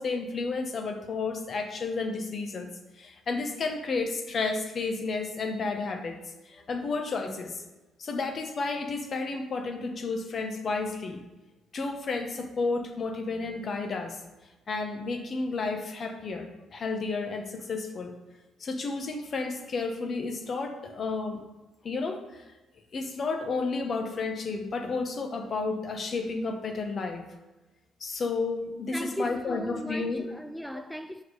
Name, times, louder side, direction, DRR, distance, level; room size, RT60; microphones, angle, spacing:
voice 1, 0.0-2.7 3.0-6.2 6.5-7.6 8.0-11.2 11.7-14.2 14.7-18.1 18.6-21.4 21.8-22.4 22.9-27.2 28.0-30.3, left 3 dB, 50° left, 1.1 m, -32 dB
voice 2, 28.9-31.2, equal, ahead, 0.3 m, -37 dB
6.4 x 4.6 x 4.8 m
cardioid pair, 80°, 0 cm